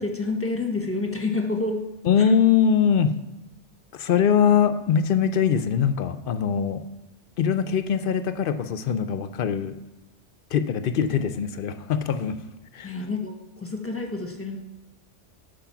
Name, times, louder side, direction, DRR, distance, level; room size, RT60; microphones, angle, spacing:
voice 1, 0.0-1.9 2.2-2.3 12.8-14.6, left 3 dB, 10° left, 2 dB, 1.1 m, -28 dB
voice 2, 2.0-3.2 3.9-6.8 7.4-9.8 10.5-12.4 12.7-12.9, left 7 dB, 60° left, 11 dB, 0.7 m, -22 dB
9.0 x 4.8 x 5.9 m, 1.1 s
omnidirectional pair, 1.2 m